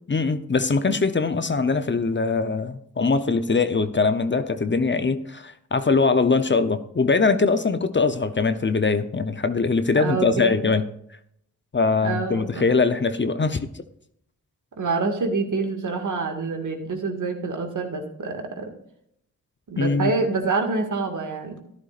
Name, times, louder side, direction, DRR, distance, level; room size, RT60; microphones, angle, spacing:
voice 1, 0.1-10.8 11.7-13.7 19.8-20.1, left 4 dB, 35° left, 10 dB, 0.8 m, -22 dB
voice 2, 10.0-10.5 12.0-12.6 14.8-18.7 19.7-21.6, right 4 dB, 65° right, 3 dB, 2.1 m, -26 dB
13.0 x 11.0 x 2.5 m, 0.71 s
cardioid pair, 45°, 33 cm